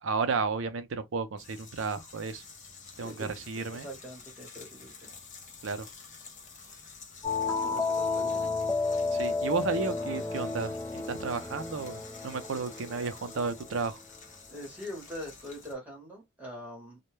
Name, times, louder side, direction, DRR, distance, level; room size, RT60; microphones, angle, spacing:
voice 1, 0.0-2.4 3.0-3.9 5.6-5.9 9.1-14.0, right 4 dB, 65° right, 0.5 m, -33 dB
sound 1, 1.4-15.7, left 5 dB, 35° left, 0.7 m, -50 dB
voice 2, 3.7-5.1 7.4-8.6 14.5-17.0, equal, 10° right, 1.0 m, -43 dB
sound 2, 7.2-13.7, left 4 dB, 15° left, 0.3 m, -32 dB
2.2 x 2.1 x 3.0 m
head